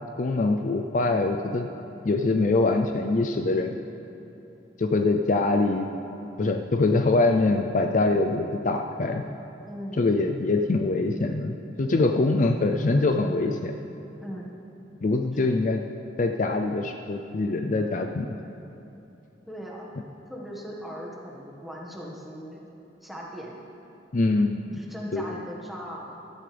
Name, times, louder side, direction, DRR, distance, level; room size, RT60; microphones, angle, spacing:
voice 1, 0.2-1.7 2.0-3.8 4.8-5.9 6.4-9.2 10.0-13.7 15.0-15.8 16.2-18.3 24.1-24.8 25.1-25.4, left 2 dB, 45° left, 5 dB, 0.4 m, -24 dB
voice 2, 9.7-10.1 14.2-14.5 15.4-15.5 19.4-19.9 20.3-22.6 23.0-23.7 24.7-26.1, equal, ahead, -4 dB, 1.6 m, -39 dB
16.5 x 12.5 x 3.4 m, 3.0 s
head